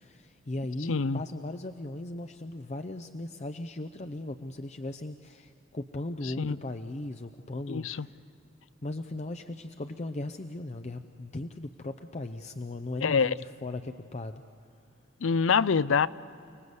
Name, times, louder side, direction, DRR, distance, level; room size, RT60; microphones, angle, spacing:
voice 1, 0.0-8.2 8.8-14.4, left 2 dB, 35° left, 7 dB, 0.6 m, -38 dB
voice 2, 0.9-1.2 6.2-6.6 7.7-8.1 13.0-13.3 15.2-16.1, left 5 dB, 75° left, 17 dB, 0.5 m, -25 dB
29.5 x 19.0 x 8.0 m, 2.7 s
head